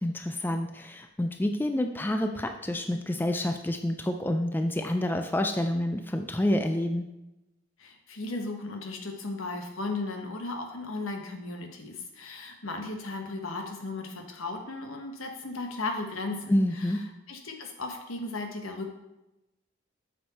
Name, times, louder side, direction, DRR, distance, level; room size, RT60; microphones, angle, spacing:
voice 1, 0.0-7.1 16.5-17.1, left 1 dB, 10° left, 6 dB, 0.3 m, -28 dB
voice 2, 7.8-16.9 17.3-18.9, left 3 dB, 80° left, 4 dB, 1.2 m, -36 dB
7.7 x 6.4 x 4.2 m, 0.96 s
head